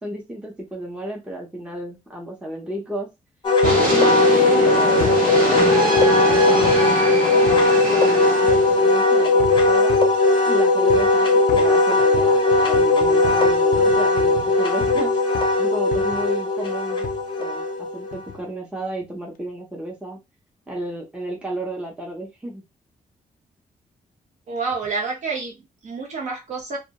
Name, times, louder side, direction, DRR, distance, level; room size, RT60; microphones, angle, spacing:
voice 1, 0.0-3.1 3.6-7.5 8.0-10.0 10.4-15.2 15.6-17.1 17.4-20.2 20.7-22.6, right 1 dB, 5° right, 0.6 m, -32 dB
Wind instrument woodwind instrument, 3.4-18.1, left 2 dB, 35° left, 0.6 m, -18 dB
sound 1, 3.6-3.9 5.0-5.3 6.0-6.9 7.5-7.7 8.5-8.8 9.4-10.2 10.9-11.2 11.5-15.1 15.3-15.6 15.9-16.3 17.0-17.3 18.1-18.4 19.0-19.1, left 8 dB, 80° left, 0.4 m, -33 dB
sound 2, 3.6-9.1, right 2 dB, 85° right, 0.9 m, -24 dB
voice 2, 24.5-26.8, right 4 dB, 55° right, 0.8 m, -29 dB
2.2 x 2.1 x 2.8 m
wide cardioid pair, 160°, 14 cm